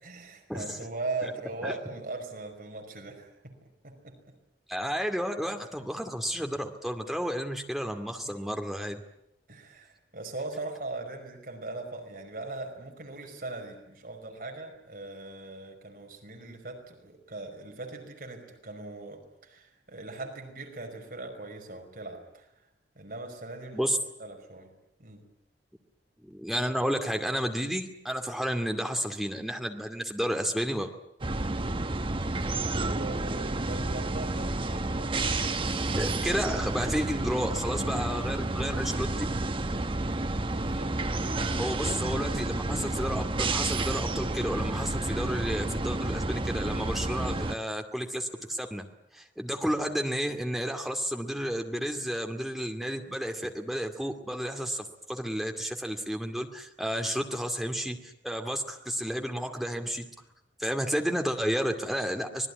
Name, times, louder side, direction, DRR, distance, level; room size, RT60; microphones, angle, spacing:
voice 1, 0.0-3.5 3.8-4.2 8.2-8.4 9.5-22.5 23.0-24.7 25.0-25.2 32.7-35.8 36.3-36.7 40.5-40.9 41.2-41.6, right 2 dB, 55° right, 3 dB, 5.3 m, -40 dB
voice 2, 4.7-9.0 23.7-24.0 26.2-30.9 36.0-39.1 41.6-48.8 49.1-60.0 60.6-62.5, equal, ahead, 4 dB, 2.3 m, -31 dB
sound 1, 31.2-47.6, right 2 dB, 30° right, 1.0 m, -30 dB
25.5 x 20.0 x 9.6 m, 0.81 s
head